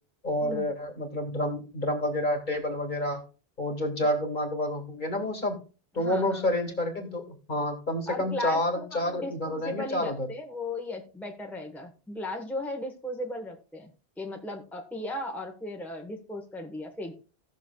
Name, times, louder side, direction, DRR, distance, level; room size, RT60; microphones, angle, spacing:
voice 1, 0.2-3.3 3.6-5.6 5.9-10.3, left 1 dB, 50° left, 4 dB, 2.0 m, -29 dB
voice 2, 6.0-6.4 8.1-13.9 14.2-17.1, left 1 dB, ahead, 2 dB, 1.1 m, -36 dB
17.5 x 6.4 x 2.3 m, 0.35 s
omnidirectional pair, 1.1 m